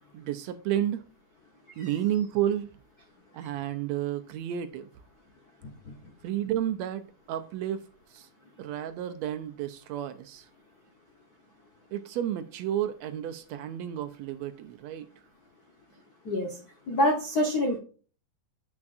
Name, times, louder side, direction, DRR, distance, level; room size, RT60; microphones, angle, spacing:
voice 1, 0.1-1.0 1.8-2.7 3.3-4.9 6.2-7.8 8.1-8.3 8.6-10.5 11.9-15.1, right 11 dB, 80° right, 1.7 m, -31 dB
voice 2, 16.2-16.6 16.9-17.8, left 1 dB, 75° left, 0.8 m, -26 dB
8.8 x 6.1 x 2.5 m
omnidirectional pair, 3.5 m